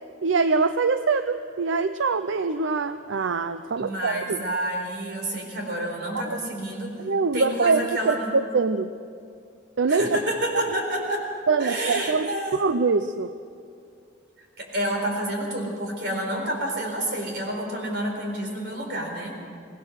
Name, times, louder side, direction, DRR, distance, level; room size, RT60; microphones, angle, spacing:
voice 1, 0.2-4.4 6.2-6.4 7.0-8.9 9.8-10.2 11.5-13.3, right 4 dB, 75° right, 11 dB, 0.5 m, -24 dB
voice 2, 3.8-6.9 7.3-8.3 9.9-11.3 11.6-12.6 14.4-19.3, right 1 dB, 55° right, 1 dB, 4.3 m, -29 dB
23.5 x 19.0 x 6.4 m, 2.4 s
head